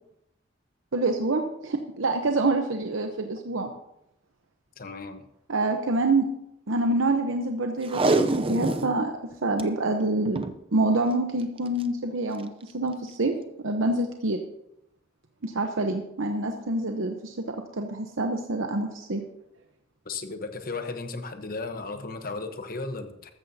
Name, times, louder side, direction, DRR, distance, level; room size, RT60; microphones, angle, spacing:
voice 1, 0.9-3.7 5.5-6.2 6.7-9.1 9.4-13.3 13.6-14.4 15.4-19.2, right 2 dB, 85° right, 4 dB, 0.9 m, -26 dB
voice 2, 4.8-5.2 20.0-23.3, left 3 dB, 50° left, 8 dB, 1.0 m, -35 dB
Packing tape duct tape, 7.8-9.0 9.3-9.6 10.2-10.6 11.6-11.8 12.4-12.5, right 2 dB, 30° right, 0.6 m, -25 dB
13.5 x 13.5 x 2.8 m, 0.82 s
head